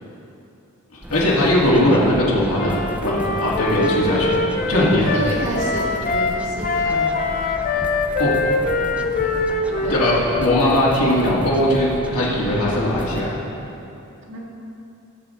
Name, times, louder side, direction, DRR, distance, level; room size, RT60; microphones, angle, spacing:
voice 1, 0.9-4.4 4.7-5.1 8.2-8.3 9.0-9.1 9.9-13.4, left 1 dB, 75° left, -7 dB, 2.2 m, -19 dB
sound 1, 1.0-13.2, equal, 5° right, 0.5 m, -34 dB
Wind instrument woodwind instrument, 2.5-6.4 6.6-10.7, left 2 dB, 35° left, 0.7 m, -23 dB
voice 2, 5.1-7.3 9.8-10.0 12.4-12.6 14.3-14.4, right 1 dB, 55° right, -4 dB, 2.0 m, -29 dB
16.0 x 6.8 x 3.8 m, 2.8 s
head